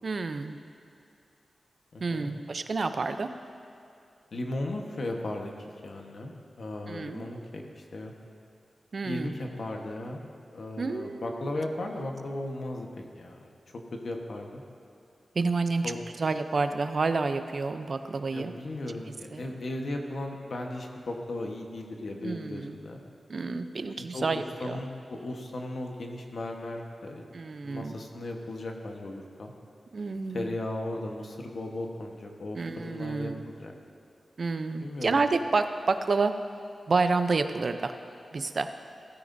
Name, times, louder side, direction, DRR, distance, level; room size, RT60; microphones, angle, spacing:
voice 1, 0.0-0.6 2.0-3.3 6.9-7.3 8.9-9.3 10.8-11.6 11.9-12.0 15.3-15.9 16.2-18.5 19.3-19.4 22.2-22.8 23.3-24.8 27.3-27.9 29.9-30.5 32.5-33.4 34.4-36.3 36.9-37.9 38.3-38.7, right 3 dB, 55° right, 9 dB, 0.6 m, -29 dB
voice 2, 1.9-2.3 4.3-5.5 5.8-8.1 9.0-10.2 10.5-14.6 15.8-16.0 18.3-23.0 24.1-27.2 27.6-29.5 30.3-33.7 34.8-35.2, left 1 dB, 60° left, 2 dB, 1.2 m, -36 dB
16.5 x 14.5 x 2.7 m, 2.5 s
wide cardioid pair, 120°, 0 cm